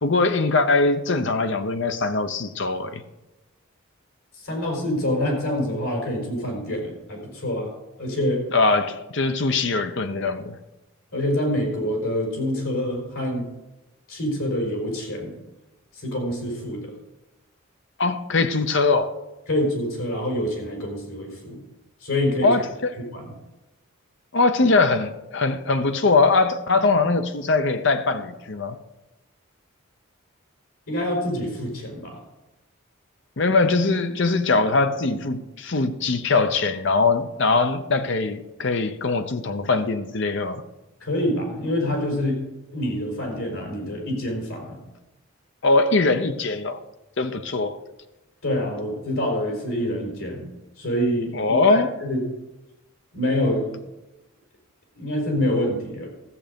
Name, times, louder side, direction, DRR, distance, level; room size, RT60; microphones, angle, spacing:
voice 1, 0.0-3.0 8.5-10.6 18.0-19.1 22.4-22.9 24.3-28.8 33.4-40.6 45.6-46.8 47.2-47.8 51.3-51.9, left 3 dB, 60° left, 0.8 m, -21 dB
voice 2, 4.4-7.7 8.0-8.4 11.1-13.5 14.1-15.3 16.0-16.9 19.5-21.6 22.0-22.5 23.1-23.2 30.9-32.2 41.0-42.4 42.7-44.8 48.4-50.5 50.8-52.2 53.1-53.8 55.0-56.1, left 1 dB, 85° left, 4.4 m, -26 dB
14.0 x 7.6 x 5.2 m
head